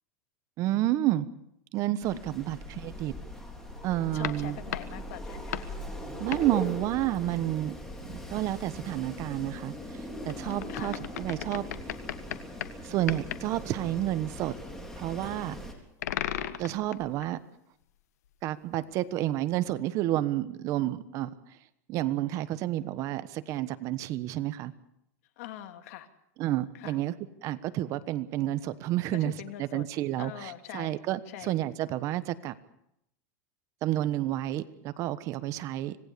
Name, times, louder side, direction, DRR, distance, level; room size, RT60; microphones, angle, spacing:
voice 1, 0.6-1.3 1.7-3.1 3.8-4.6 6.2-7.8 8.1-11.6 12.8-14.5 15.0-15.6 16.6-17.4 18.4-21.3 21.9-24.7 26.4-27.1 27.4-29.3 29.6-32.5 33.8-36.0, right 14 dB, 40° right, 13 dB, 1.2 m, -30 dB
Wind, 2.0-15.7, left 1 dB, 5° left, 3.8 m, -41 dB
voice 2, 2.1-2.6 4.1-5.7 10.7-11.0 25.4-26.1 26.7-27.0 29.1-29.9 30.2-31.0 31.3-31.6, left 12 dB, 65° left, 9 dB, 2.4 m, -43 dB
sound 1, 4.2-5.8 6.3-6.6 10.3-12.8 13.1-13.5 16.0-17.3 18.7-18.8, left 11 dB, 85° left, 1.6 m, -36 dB
26.0 x 18.5 x 6.9 m, 0.78 s
supercardioid pair, 155°, 8 cm